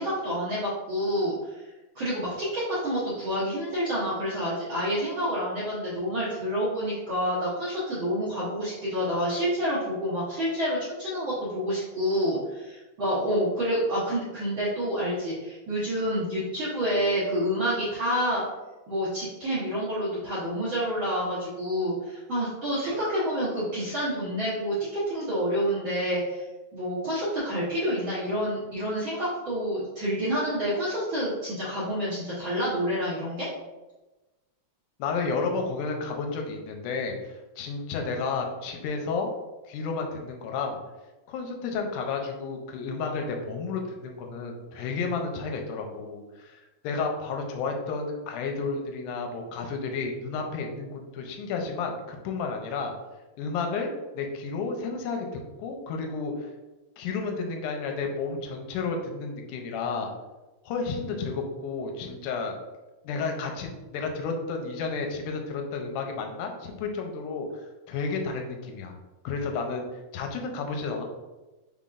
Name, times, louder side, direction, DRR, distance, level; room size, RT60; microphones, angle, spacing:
voice 1, 0.0-1.6 1.9-18.4 18.9-24.7 25.1-26.4 26.7-33.5, equal, 80° right, -10 dB, 1.1 m, -28 dB
voice 2, 35.0-39.3 39.7-40.8 41.3-52.9 53.4-55.3 55.6-56.5 57.0-60.1 60.6-62.6 63.0-69.0 69.2-69.9 70.1-71.0, left 4 dB, 80° left, 3 dB, 1.9 m, -32 dB
5.8 x 3.6 x 2.5 m, 1.1 s
omnidirectional pair, 4.1 m